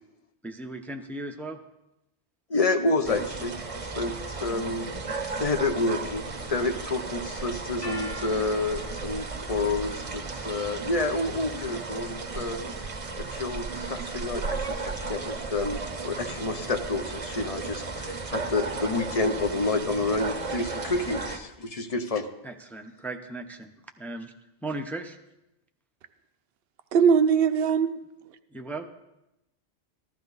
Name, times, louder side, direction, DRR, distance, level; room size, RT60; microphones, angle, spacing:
voice 1, 0.4-1.6 22.4-23.7 24.0-24.3 24.6-25.2 28.5-28.9, right 2 dB, ahead, 5 dB, 0.5 m, -36 dB
voice 2, 2.5-3.6 4.0-4.9 5.3-12.6 13.2-22.3, left 3 dB, 40° left, 8 dB, 0.7 m, -29 dB
sound 1, 3.0-21.4, right 4 dB, 35° right, 0.8 m, -35 dB
sound 2, 7.8-13.7, left 1 dB, 65° left, 2.6 m, -47 dB
voice 3, 26.9-28.0, right 6 dB, 65° right, 10 dB, 0.8 m, -20 dB
15.0 x 12.0 x 4.0 m, 0.91 s
omnidirectional pair, 1.1 m